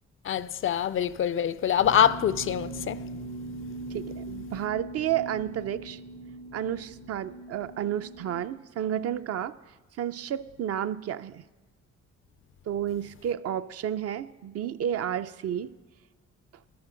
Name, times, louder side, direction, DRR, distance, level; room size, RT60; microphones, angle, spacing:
voice 1, 0.2-3.0, left 9 dB, 45° left, 0.4 m, -25 dB
sound 1, 1.8-8.4, right 2 dB, 90° right, 2.0 m, -40 dB
voice 2, 3.9-6.0 6.5-9.6 10.0-11.4 12.7-15.7, right 10 dB, 55° right, 0.5 m, -31 dB
13.5 x 12.5 x 3.8 m
cardioid pair, 90°, 30 cm